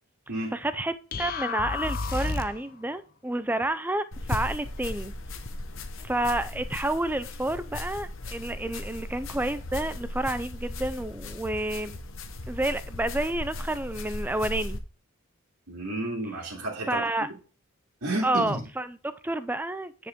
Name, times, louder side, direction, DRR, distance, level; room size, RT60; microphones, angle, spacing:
voice 1, 0.5-5.1 6.0-12.0 12.5-14.8 16.9-17.3 18.2-20.1, right 1 dB, 10° right, 13 dB, 0.4 m, -30 dB
sound 1, 1.1-2.7, left 4 dB, 40° left, 0.7 m, -31 dB
sound 2, 4.1-14.8, left 2 dB, 60° left, 1.0 m, -37 dB
voice 2, 15.7-17.0 17.3-17.4 18.0-18.6, right 1 dB, 80° right, -5 dB, 2.5 m, -31 dB
9.8 x 5.0 x 3.6 m, 0.37 s
head